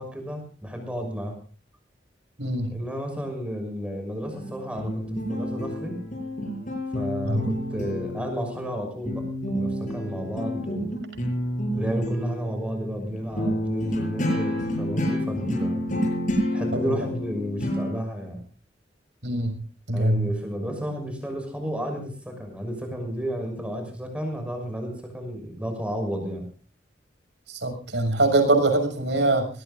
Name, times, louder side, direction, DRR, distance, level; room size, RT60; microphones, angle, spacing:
voice 1, 0.0-1.4 2.7-6.0 6.9-10.9 11.8-15.8 16.5-18.4 19.9-26.5, equal, 5° right, 4 dB, 6.1 m, -32 dB
voice 2, 2.4-2.7 7.2-7.4 16.7-16.9 19.2-19.5 19.9-20.3 27.5-29.5, right 2 dB, 85° right, 6 dB, 6.6 m, -23 dB
sound 1, 4.3-8.8 9.1-17.9, equal, 45° left, 7.1 m, -29 dB
22.5 x 19.0 x 2.6 m, 0.40 s
head